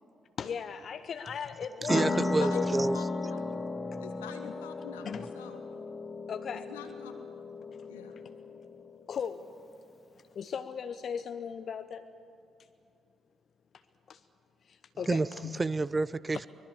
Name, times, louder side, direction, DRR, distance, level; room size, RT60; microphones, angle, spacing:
voice 1, 0.4-2.0 2.5-2.8 4.4-4.5 5.0-5.3 6.3-6.7 9.1-9.6 10.3-12.1 14.1-14.2 14.6-15.6, left 7 dB, 50° left, 0.8 m, -37 dB
voice 2, 1.8-3.0 15.1-15.3 15.6-16.5, right 3 dB, 25° right, 0.5 m, -28 dB
sound 1, 1.9-9.1, left 3 dB, 25° left, 1.7 m, -35 dB
voice 3, 4.0-5.6 6.5-7.1 7.9-8.2, left 9 dB, 75° left, 1.8 m, -45 dB
24.0 x 21.5 x 8.4 m
figure-of-eight pair, 40°, 0 cm